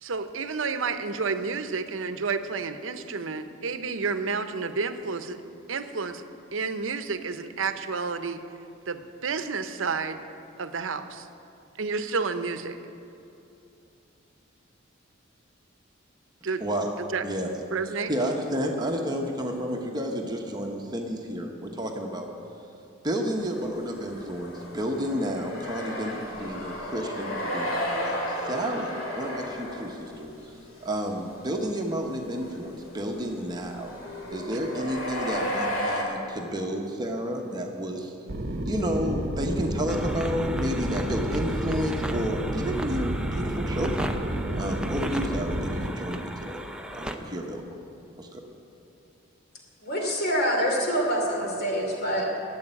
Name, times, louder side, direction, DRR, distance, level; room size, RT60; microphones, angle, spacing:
voice 1, 0.0-5.4 5.7-6.2 6.5-8.4 8.9-10.2 10.6-11.3 11.8-12.8 16.4-16.6 17.0-17.2 17.7-18.1, right 4 dB, 75° right, 10 dB, 0.7 m, -30 dB
voice 2, 18.1-22.3 23.0-30.5 30.8-34.0 34.3-38.1 38.6-44.1 44.5-46.6 46.9-47.6 48.2-48.4, equal, 20° right, 1 dB, 1.0 m, -31 dB
sound 1, 23.4-30.2 30.7-31.0 31.3-31.4 32.0-36.0, equal, 85° left, 2.2 m, -33 dB
sound 2, 38.3-45.9, right 1 dB, 50° right, 0.9 m, -30 dB
sound 3, 39.9-47.2, right 1 dB, 5° right, 0.6 m, -36 dB
voice 3, 49.8-52.4, equal, 50° left, 0 dB, 2.8 m, -26 dB
12.0 x 8.0 x 9.8 m, 2.8 s
head